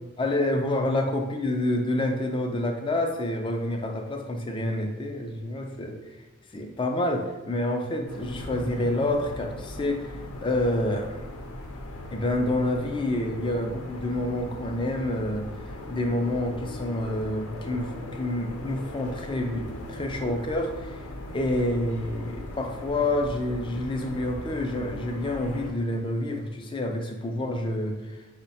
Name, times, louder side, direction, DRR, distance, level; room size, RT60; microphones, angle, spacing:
voice 1, 0.2-6.2 6.5-11.3 12.1-21.0 21.3-28.2, left 1 dB, 20° left, 3 dB, 0.4 m, -28 dB
sound 1, 8.1-25.7, left 1 dB, 75° left, 0.6 m, -39 dB
5.5 x 2.1 x 4.0 m, 1.2 s
head